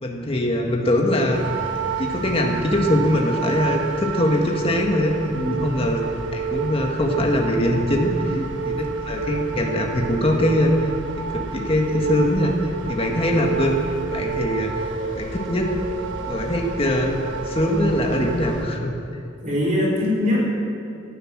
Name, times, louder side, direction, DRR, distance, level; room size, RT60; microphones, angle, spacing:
voice 1, 0.0-1.5 2.0-5.2 5.5-6.0 6.3-13.8 14.1-14.8 15.1-15.7 16.3-17.2 17.5-18.9, left 1 dB, 30° left, 1 dB, 1.7 m, -22 dB
sound 1, 1.3-18.7, right 5 dB, 70° right, 1.3 m, -29 dB
voice 2, 5.3-5.6 8.2-8.4 19.4-20.5, left 1 dB, 40° right, -2 dB, 3.9 m, -22 dB
17.0 x 11.0 x 6.2 m, 2.7 s
head